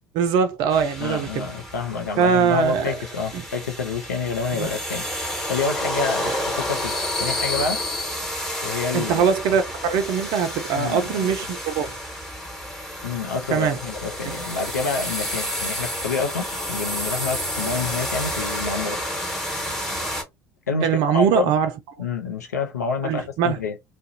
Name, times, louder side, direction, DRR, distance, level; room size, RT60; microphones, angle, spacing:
voice 1, 0.1-1.5 2.2-2.9 3.3-3.4 4.5-4.7 8.9-12.0 13.5-13.8 14.2-14.4 20.8-21.7 23.0-23.6, right 7 dB, 55° right, 0.4 m, -22 dB
sound 1, 0.7-20.2, left 1 dB, 5° left, 1.2 m, -30 dB
voice 2, 1.0-7.8 8.6-9.3 10.7-11.3 13.0-19.0 20.7-21.5 22.0-23.8, left 5 dB, 80° left, 0.5 m, -28 dB
2.4 x 2.1 x 2.6 m
figure-of-eight pair, 60°, 9 cm